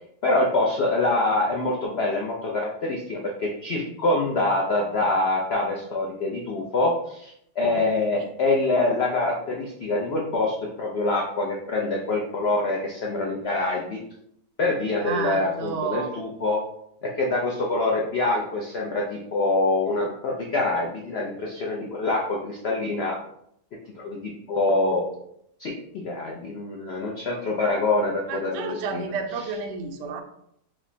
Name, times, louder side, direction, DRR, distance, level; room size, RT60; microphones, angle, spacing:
voice 1, 0.2-14.0 14.6-16.6 17.0-23.2 24.0-25.0 25.6-29.0, left 2 dB, 70° left, -2 dB, 0.6 m, -25 dB
voice 2, 15.0-16.1 28.3-30.2, right 5 dB, 70° right, 4 dB, 0.8 m, -31 dB
4.9 x 2.0 x 2.6 m, 0.72 s
omnidirectional pair, 1.6 m